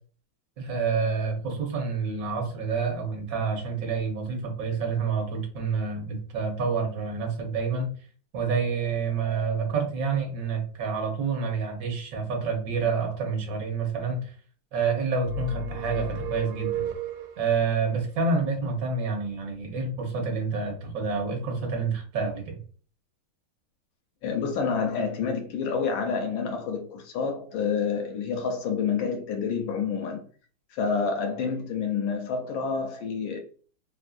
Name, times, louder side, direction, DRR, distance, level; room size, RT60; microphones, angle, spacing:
voice 1, 0.6-7.9 8.3-14.3 14.7-16.9 17.4-22.6, right 5 dB, 50° right, 1.2 m, -28 dB
sound 1, 15.2-17.6, right 3 dB, 90° right, 1.5 m, -33 dB
voice 2, 24.2-30.2 30.7-33.4, left 5 dB, 75° left, 1.2 m, -28 dB
3.4 x 2.7 x 2.4 m
omnidirectional pair, 2.4 m